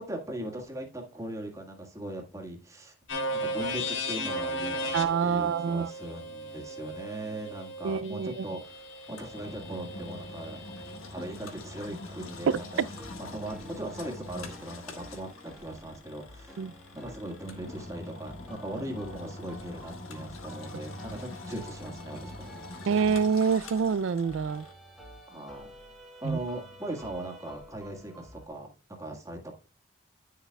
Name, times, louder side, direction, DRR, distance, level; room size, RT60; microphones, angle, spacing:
voice 1, 0.0-2.9 3.3-4.9 5.2-10.6 11.1-12.9 13.1-16.6 16.9-22.6 25.3-25.7 26.2-29.5, right 1 dB, 15° right, 1.7 m, -39 dB
sound 1, 3.1-11.0, equal, 70° left, 1.5 m, -36 dB
voice 2, 4.9-5.9 7.8-8.5 12.5-12.6 16.6-16.7 22.9-24.6 26.2-26.4, right 6 dB, 70° right, 0.3 m, -26 dB
Engine, 8.6-24.7, left 2 dB, 85° left, 1.6 m, -44 dB
sound 2, 12.9-28.5, right 1 dB, ahead, 1.4 m, -50 dB
10.0 x 6.6 x 2.3 m
head